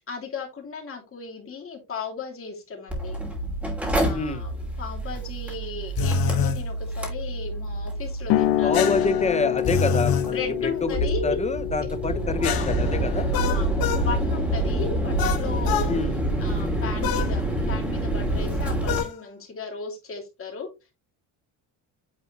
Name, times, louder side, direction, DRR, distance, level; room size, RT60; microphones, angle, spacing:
voice 1, 0.1-3.2 4.0-8.9 10.3-11.4 12.4-12.7 13.3-15.9 16.4-17.4 17.7-20.7, left 4 dB, 30° left, 3.0 m, -35 dB
Mechanical fan, 2.9-19.0, right 1 dB, 5° right, 2.7 m, -27 dB
voice 2, 4.1-4.5 8.6-11.0 11.2-13.3 15.9-16.2, left 3 dB, 15° left, 0.8 m, -27 dB
sound 1, 6.0-6.6 8.7-10.3 12.4-14.1 15.2-15.9 17.0-17.3 18.9-19.1, left 6 dB, 60° left, 1.3 m, -26 dB
sound 2, 8.3-15.4, left 12 dB, 90° left, 0.7 m, -28 dB
9.4 x 4.2 x 3.0 m
cardioid pair, 155°, 41 cm